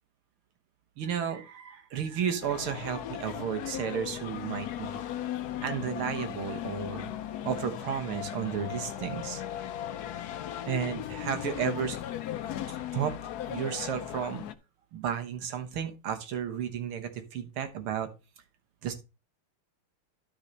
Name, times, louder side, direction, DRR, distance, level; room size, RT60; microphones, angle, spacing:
voice 1, 1.0-5.0 5.6-7.1 7.5-9.4 10.7-12.0 12.7-13.2 13.5-14.4 14.9-18.1 18.8-18.9, right 8 dB, 75° right, 8 dB, 2.1 m, -33 dB
sound 1, 2.4-14.5, left 11 dB, 70° left, 0.9 m, -37 dB
12.5 x 4.4 x 3.9 m, 0.29 s
omnidirectional pair, 2.4 m